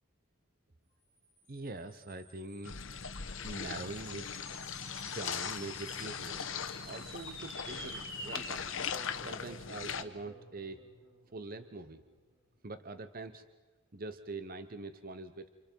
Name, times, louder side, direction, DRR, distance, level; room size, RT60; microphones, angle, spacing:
sound 1, 1.4-12.1, equal, 25° right, 5.5 m, -50 dB
voice 1, 1.5-2.8 3.4-4.4 5.0-6.5 6.9-8.7 9.2-10.8 11.3-12.0 12.6-13.4 13.9-15.5, right 3 dB, 45° right, 10 dB, 0.8 m, -43 dB
sound 2, 2.6-10.0, left 7 dB, 70° left, 1.0 m, -40 dB
29.5 x 27.5 x 4.6 m, 1.3 s
head